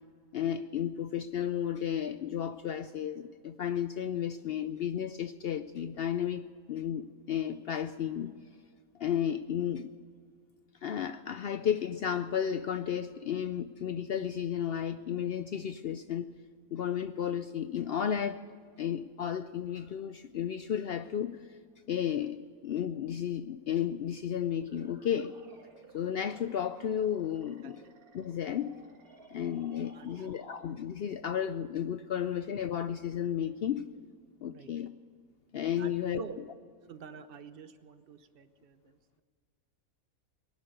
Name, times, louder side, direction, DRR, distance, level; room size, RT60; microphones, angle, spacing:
voice 1, 0.3-6.4 6.7-8.3 9.0-9.9 10.8-16.3 16.7-18.4 18.8-21.4 21.9-22.4 22.6-25.3 25.9-27.8 28.1-28.7 29.3-33.9 34.4-34.9 35.5-36.2, left 9 dB, 75° left, 11 dB, 0.5 m, -33 dB
sound 1, 24.5-31.0, right 3 dB, 80° right, 2.2 m, -57 dB
voice 2, 29.9-30.3 34.5-34.7 35.8-36.4 36.9-39.2, right 6 dB, 45° right, 10 dB, 1.0 m, -47 dB
19.5 x 11.5 x 6.6 m, 2.1 s
omnidirectional pair, 1.5 m